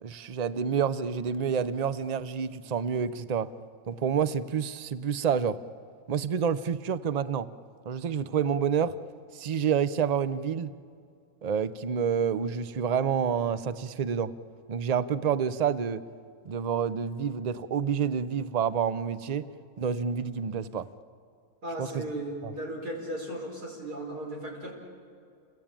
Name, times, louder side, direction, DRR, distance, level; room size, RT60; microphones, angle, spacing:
voice 1, 0.0-3.5 3.9-5.6 6.1-7.5 7.9-9.0 9.3-10.8 11.4-14.3 14.7-16.0 16.4-19.5 19.8-20.9 21.8-22.0 22.4-22.5, right 7 dB, 45° right, 15 dB, 0.5 m, -28 dB
voice 2, 21.6-24.7, right 1 dB, 85° right, 0 dB, 5.4 m, -36 dB
29.0 x 22.0 x 9.0 m, 2.4 s
omnidirectional pair, 1.6 m